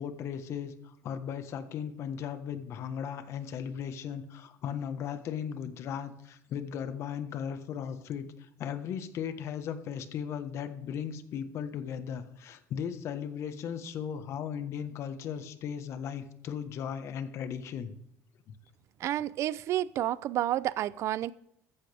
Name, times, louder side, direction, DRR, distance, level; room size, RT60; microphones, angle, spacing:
voice 1, 0.0-17.9 18.5-18.6, left 8 dB, 55° left, 1.4 m, -37 dB
voice 2, 19.0-21.3, right 13 dB, 55° right, 0.6 m, -30 dB
14.5 x 14.5 x 3.5 m
cardioid pair, 135°, 6 cm